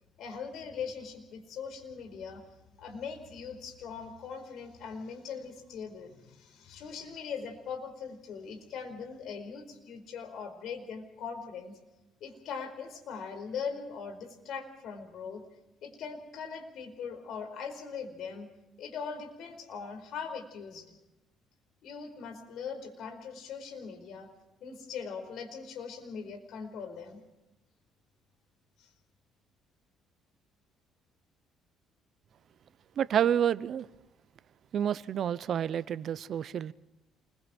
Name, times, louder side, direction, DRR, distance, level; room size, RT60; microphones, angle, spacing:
voice 1, 0.2-2.4 2.8-11.8 12.2-15.4 15.8-18.5 18.8-20.9 21.8-24.3 24.6-27.2 28.8-28.9, left 6 dB, 65° left, 4.7 m, -41 dB
voice 2, 33.0-33.9 34.7-36.7, right 9 dB, 55° right, 0.8 m, -29 dB
28.0 x 22.0 x 4.5 m
cardioid pair, 100°, 0 cm